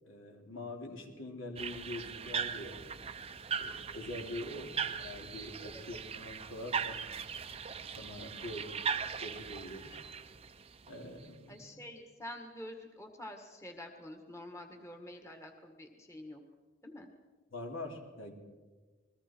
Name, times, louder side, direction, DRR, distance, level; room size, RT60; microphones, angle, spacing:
voice 1, 0.0-2.8 3.6-7.0 8.0-8.8 9.2-10.0 10.8-11.7 17.5-18.3, left 1 dB, 75° left, 2 dB, 3.2 m, -44 dB
sound 1, 1.6-11.3, right 6 dB, 30° right, 0.7 m, -39 dB
voice 2, 11.5-16.4 16.8-17.1, left 1 dB, 15° left, 4 dB, 1.6 m, -47 dB
29.0 x 21.5 x 4.5 m, 1.4 s
head